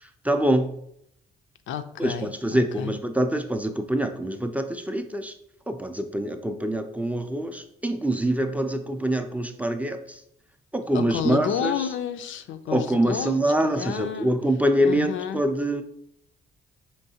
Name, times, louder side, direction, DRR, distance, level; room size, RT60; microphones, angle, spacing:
voice 1, 0.2-0.7 2.0-5.3 5.7-10.2 10.7-11.7 12.7-15.8, right 1 dB, 5° right, 6 dB, 0.4 m, -25 dB
voice 2, 1.7-2.9 10.9-14.3 14.8-15.4, left 9 dB, 75° left, 10 dB, 0.4 m, -31 dB
4.5 x 3.0 x 2.8 m, 0.72 s
cardioid pair, 90°, 20 cm